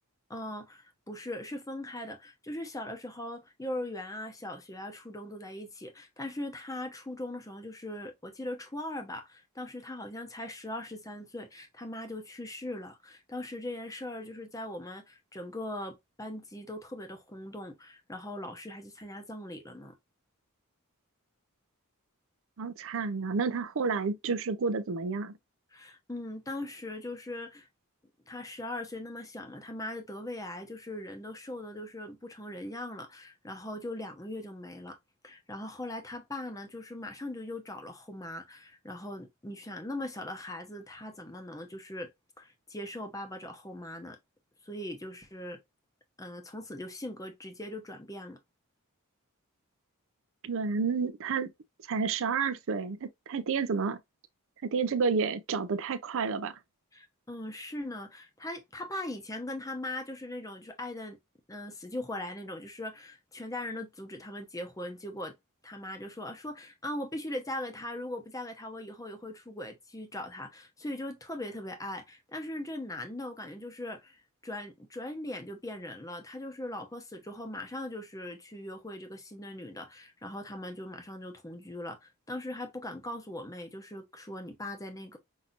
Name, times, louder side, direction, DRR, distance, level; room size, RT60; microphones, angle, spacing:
voice 1, 0.3-19.9 25.7-27.7 28.3-35.0 35.2-42.1 42.4-44.2 44.6-45.6 46.2-48.4 56.9-61.2 61.5-65.3 65.6-85.2, left 1 dB, 15° left, 0.8 m, -40 dB
voice 2, 22.6-25.3 50.4-51.5 51.9-54.0 54.6-56.6, right 5 dB, 60° right, 0.5 m, -30 dB
5.6 x 2.8 x 2.5 m
head